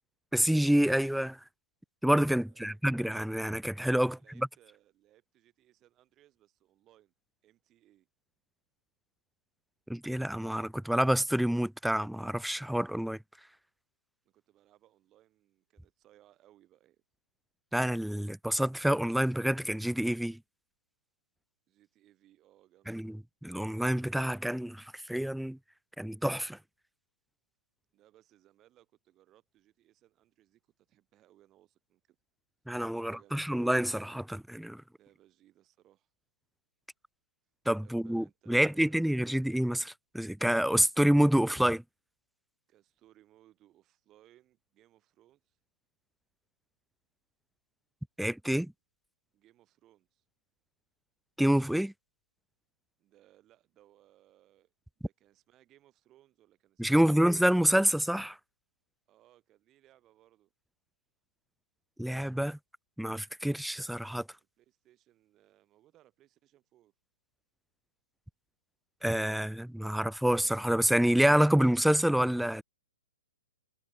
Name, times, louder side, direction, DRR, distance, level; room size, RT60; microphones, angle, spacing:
voice 1, 0.3-1.4 2.0-4.2 9.9-13.2 17.7-20.4 22.9-23.1 23.4-25.6 26.0-26.6 32.7-34.8 37.7-41.8 48.2-48.7 51.4-51.9 56.8-58.4 62.0-62.6 63.0-64.2 69.0-72.6, equal, ahead, 0.3 m, -27 dB
voice 2, 2.4-2.8 4.0-7.1 7.4-8.1 14.2-17.0 21.7-23.1 27.9-32.2 32.9-33.5 35.0-36.1 37.8-39.0 42.7-45.6 49.3-50.2 53.0-57.2 59.1-60.5 64.4-66.9, right 14 dB, 25° right, 5.9 m, -64 dB
hypercardioid pair, 125°, 0 cm